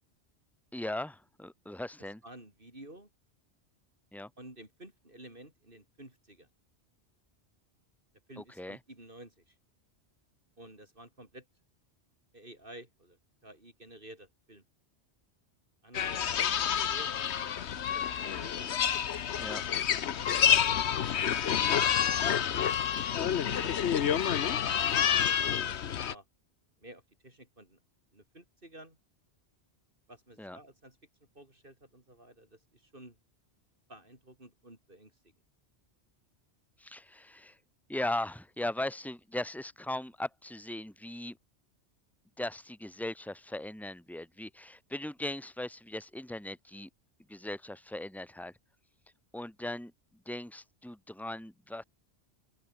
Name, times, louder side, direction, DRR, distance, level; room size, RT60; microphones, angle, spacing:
voice 1, 0.7-2.2 4.1-4.3 8.4-8.8 19.4-19.6 30.4-30.6 36.8-37.6 37.9-41.4 42.4-46.9 47.3-48.5 49.3-49.9 50.3-51.8, left 1 dB, ahead, 2.7 m, -38 dB
voice 2, 2.2-3.1 4.4-6.5 8.3-9.5 10.6-11.5 12.3-14.6 15.8-16.2 16.6-18.7 20.2-21.1 22.3-22.5 23.3-23.7 24.9-26.2 26.8-27.8 28.1-29.0 30.1-31.0 31.4-33.2 33.9-35.1, right 1 dB, 50° right, 5.6 m, -52 dB
sound 1, 15.9-26.1, left 9 dB, 75° left, 1.2 m, -28 dB
open air
omnidirectional pair, 1.2 m